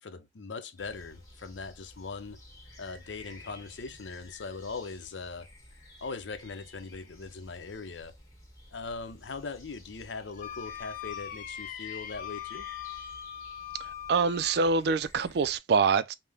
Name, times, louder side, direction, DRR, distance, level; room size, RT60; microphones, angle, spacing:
voice 1, 0.0-2.4 2.8-5.5 6.0-8.1 8.7-12.7, left 4 dB, 90° left, 0.6 m, -40 dB
sound 1, 0.8-15.6, left 1 dB, 20° left, 1.7 m, -52 dB
Wind instrument woodwind instrument, 10.4-14.8, left 10 dB, 45° left, 0.5 m, -41 dB
voice 2, 13.8-16.1, right 5 dB, 60° right, 0.4 m, -25 dB
5.5 x 2.1 x 3.4 m
head